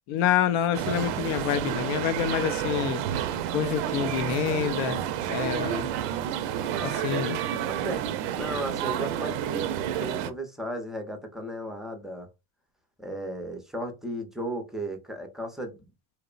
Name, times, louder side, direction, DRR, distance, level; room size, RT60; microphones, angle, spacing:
voice 1, 0.1-3.0 3.5-5.0 5.3-5.9 6.8-7.4, left 10 dB, 70° left, 0.5 m, -27 dB
sound 1, 0.7-10.3, right 10 dB, 80° right, 0.5 m, -30 dB
voice 2, 7.7-12.3 13.0-15.9, right 1 dB, ahead, 0.5 m, -35 dB
2.9 x 2.0 x 2.4 m
supercardioid pair, 120°, 42 cm